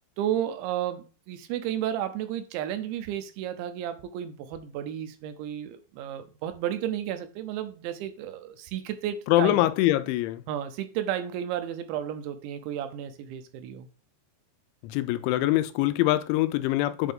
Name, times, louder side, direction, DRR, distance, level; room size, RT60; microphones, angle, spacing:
voice 1, 0.2-9.6 10.5-13.9, right 10 dB, 85° right, 3.0 m, -32 dB
voice 2, 9.3-10.4 14.8-17.1, left 15 dB, 85° left, 2.9 m, -24 dB
8.1 x 3.8 x 3.7 m
omnidirectional pair, 5.2 m